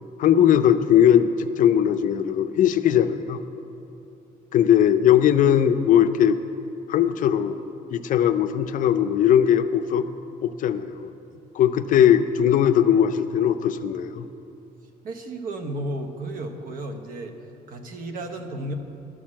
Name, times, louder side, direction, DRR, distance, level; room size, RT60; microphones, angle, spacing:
voice 1, 0.2-3.4 4.5-6.4 6.9-7.6 7.9-10.0 10.4-11.1 11.5-14.3, left 9 dB, 60° left, 10 dB, 0.5 m, -19 dB
voice 2, 15.0-17.3 17.7-18.7, right 1 dB, 65° right, 6 dB, 1.0 m, -33 dB
12.5 x 6.3 x 7.4 m, 2.8 s
cardioid pair, 150°, 15 cm